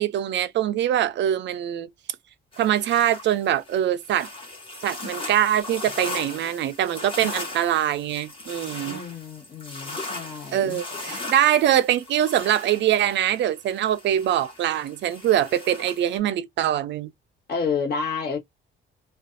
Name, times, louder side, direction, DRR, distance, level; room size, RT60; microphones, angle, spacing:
voice 1, 0.0-1.9 2.6-4.3 4.8-9.0 10.5-17.1, right 11 dB, 60° right, 0.4 m, -23 dB
sound 1, 2.5-16.2, left 2 dB, 25° left, 1.1 m, -38 dB
voice 2, 8.8-10.8 17.5-18.4, left 5 dB, 50° left, 1.3 m, -30 dB
2.5 x 2.3 x 2.5 m
cardioid pair, 160°, 21 cm